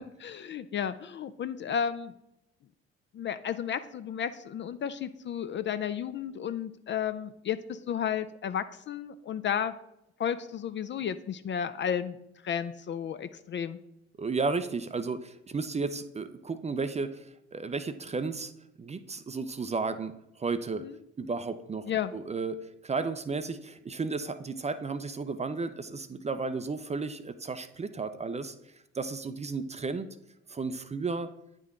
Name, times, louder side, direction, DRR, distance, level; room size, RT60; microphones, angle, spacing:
voice 1, 0.0-2.1 3.1-9.7 10.2-12.2 12.4-13.8 20.8-20.9 21.9-22.1, left 8 dB, 35° left, 12 dB, 0.4 m, -33 dB
voice 2, 14.2-18.5 18.8-20.8 21.2-28.6 28.9-30.1 30.5-31.3, right 4 dB, 20° right, 12 dB, 0.5 m, -33 dB
9.4 x 3.7 x 3.7 m, 0.82 s
hypercardioid pair, 50°, 34 cm